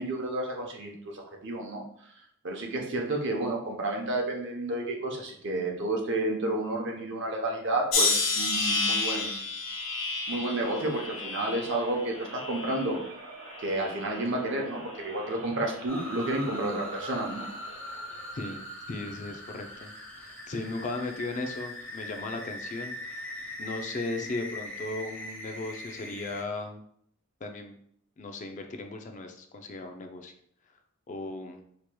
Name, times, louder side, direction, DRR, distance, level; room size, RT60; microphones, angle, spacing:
voice 1, 0.0-1.8 2.4-9.5 10.3-13.0 13.6-17.4, right 2 dB, 60° right, 1 dB, 0.8 m, -31 dB
sound 1, 7.9-13.1 13.5-14.2 14.9-15.2, left 3 dB, 65° left, 1.0 m, -31 dB
sound 2, 10.6-18.6, right 1 dB, 90° right, 0.9 m, -46 dB
sound 3, 15.9-26.4, left 1 dB, 5° left, 1.3 m, -41 dB
voice 2, 18.3-19.9 20.2-26.8 27.4-27.8 28.2-30.3 31.1-31.6, left 2 dB, 35° left, 5 dB, 0.4 m, -37 dB
4.5 x 3.0 x 2.2 m, 0.67 s
head